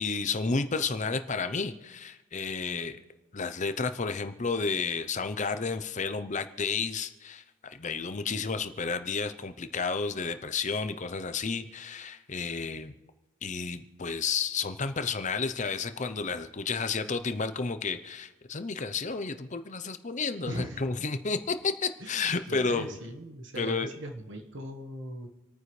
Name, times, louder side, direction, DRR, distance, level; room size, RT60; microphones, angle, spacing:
voice 1, 0.0-3.0 3.3-12.9 13.4-23.0 23.6-23.9, left 4 dB, 35° left, 10 dB, 0.7 m, -31 dB
voice 2, 20.4-20.8 22.0-25.3, right 1 dB, 60° right, 4 dB, 1.5 m, -39 dB
28.0 x 9.5 x 3.3 m, 1.1 s
head